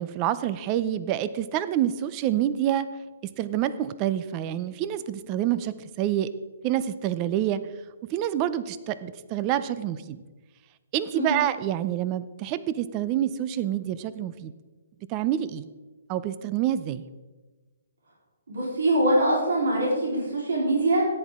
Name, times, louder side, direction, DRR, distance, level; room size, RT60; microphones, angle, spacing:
voice 1, 0.0-2.9 3.4-6.3 6.6-7.6 8.1-10.2 10.9-14.5 15.1-15.7 16.1-17.0, right 11 dB, 25° right, 15 dB, 0.5 m, -27 dB
voice 2, 18.5-21.0, right 1 dB, 80° right, -4 dB, 4.0 m, -23 dB
14.0 x 10.0 x 3.7 m, 1.3 s
hypercardioid pair, 155°, 0 cm